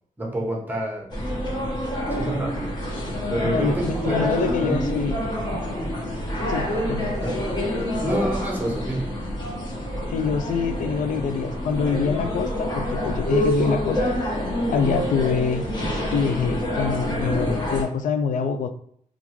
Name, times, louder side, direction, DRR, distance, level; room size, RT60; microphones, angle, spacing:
voice 1, 0.2-1.1 2.1-2.7 3.3-4.9 7.2-7.4 8.0-9.1, right 1 dB, 10° right, 0.9 m, -27 dB
sound 1, 1.1-17.8, equal, 30° left, 1.2 m, -27 dB
voice 2, 3.4-5.2 6.5-7.2 10.1-14.1 14.7-15.7 16.1-18.7, left 6 dB, 70° left, 0.4 m, -25 dB
3.5 x 2.4 x 2.9 m
wide cardioid pair, 115°, 14 cm